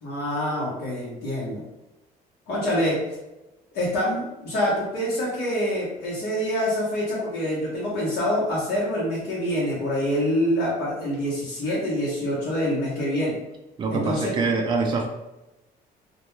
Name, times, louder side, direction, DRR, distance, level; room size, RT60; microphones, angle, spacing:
voice 1, 0.0-1.6 2.5-3.0 3.7-13.4 13.9-14.5, equal, 80° left, -7 dB, 0.9 m, -26 dB
voice 2, 13.8-15.1, right 4 dB, 30° right, 2 dB, 0.4 m, -24 dB
2.2 x 2.2 x 3.0 m, 0.99 s
cardioid pair, 110°, 17 cm